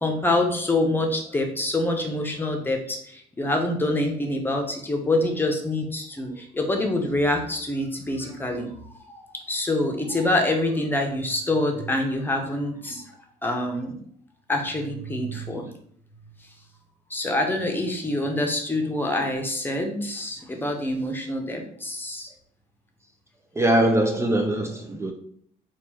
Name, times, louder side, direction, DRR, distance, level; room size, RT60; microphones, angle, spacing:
voice 1, 0.0-8.7 9.1-13.0 13.4-14.0 14.5-15.7 17.1-22.3, left 1 dB, 10° left, 2 dB, 0.9 m, -26 dB
voice 2, 23.6-25.1, right 1 dB, 15° right, 3 dB, 0.4 m, -22 dB
4.3 x 2.5 x 4.3 m, 0.64 s
cardioid pair, 110°, 17 cm